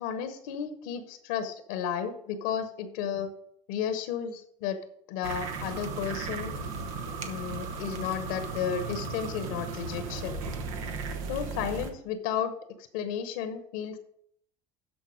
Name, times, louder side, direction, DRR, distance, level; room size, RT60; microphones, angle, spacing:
voice 1, 0.0-3.3 3.7-4.8 5.1-6.5 7.3-10.4 11.3-12.5 12.9-14.0, left 8 dB, 70° left, 10 dB, 1.0 m, -33 dB
sound 1, 5.2-11.9, right 4 dB, 75° right, 1.1 m, -36 dB
12.5 x 4.5 x 5.1 m, 0.68 s
hypercardioid pair, 65°, 17 cm